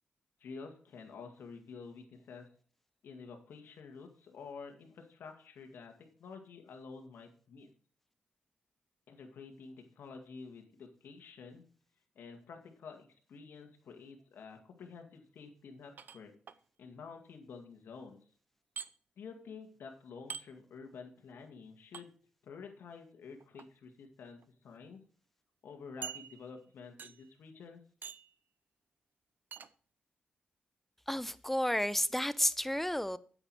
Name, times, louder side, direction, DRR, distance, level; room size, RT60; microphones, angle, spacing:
voice 1, 0.4-2.5 3.0-5.9 6.2-7.7 9.1-11.6 12.2-16.3 16.8-18.2 19.2-22.1 22.4-25.0 25.6-27.8, left 5 dB, 75° left, 1.9 m, -50 dB
sound 1, 16.0-16.6 18.8-18.9 20.3-20.5 21.9-22.1 23.4-23.7 24.4-24.5 24.9-25.0 26.0-26.6 27.0-27.3 28.0-28.3 29.5-29.7, right 6 dB, 60° right, 0.6 m, -45 dB
voice 2, 31.1-33.2, equal, 5° left, 0.7 m, -31 dB
8.5 x 7.9 x 4.7 m
supercardioid pair, 50°, 4 cm